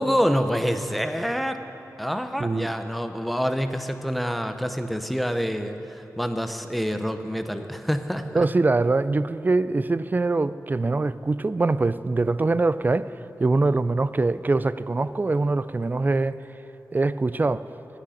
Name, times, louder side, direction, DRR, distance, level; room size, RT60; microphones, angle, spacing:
voice 1, 0.0-1.6 2.0-8.5, equal, ahead, 8 dB, 0.7 m, -27 dB
voice 2, 2.4-2.7 8.3-13.1 13.4-16.4 16.9-17.6, right 3 dB, 30° right, 16 dB, 0.3 m, -23 dB
9.9 x 8.8 x 9.9 m, 3.0 s
wide cardioid pair, 95°, 6 cm